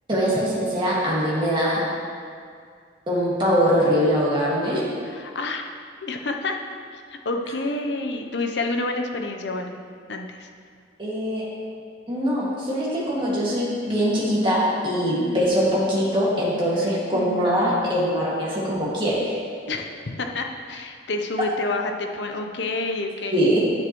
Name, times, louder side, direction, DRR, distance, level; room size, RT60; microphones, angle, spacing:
voice 1, 0.1-1.8 3.1-4.9 11.0-11.4 12.1-19.4 23.3-23.6, equal, 25° right, -7 dB, 1.9 m, -22 dB
voice 2, 5.0-5.7 6.0-6.6 6.9-9.8 10.1-10.5 15.2-15.5 16.8-18.1 19.7-23.5, left 2 dB, 65° left, 4 dB, 0.7 m, -29 dB
10.5 x 6.2 x 3.0 m, 2.2 s
head